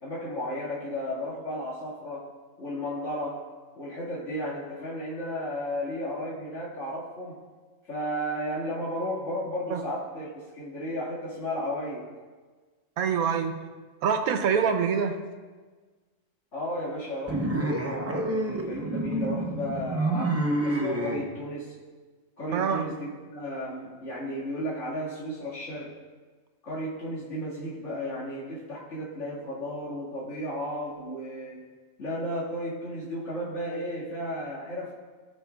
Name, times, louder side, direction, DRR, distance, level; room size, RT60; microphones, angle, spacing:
voice 1, 0.0-2.3 2.6-3.5 3.8-7.4 7.8-12.1 16.5-21.7 22.4-26.0 26.6-31.6 32.0-34.9, equal, 55° left, -8 dB, 2.3 m, -34 dB
voice 2, 13.0-13.6 14.0-15.2 22.5-22.8, right 7 dB, 85° right, 7 dB, 1.2 m, -25 dB
sound 1, 17.3-21.2, right 1 dB, 15° right, 0.5 m, -28 dB
16.5 x 5.7 x 2.3 m, 1.4 s
omnidirectional pair, 1.5 m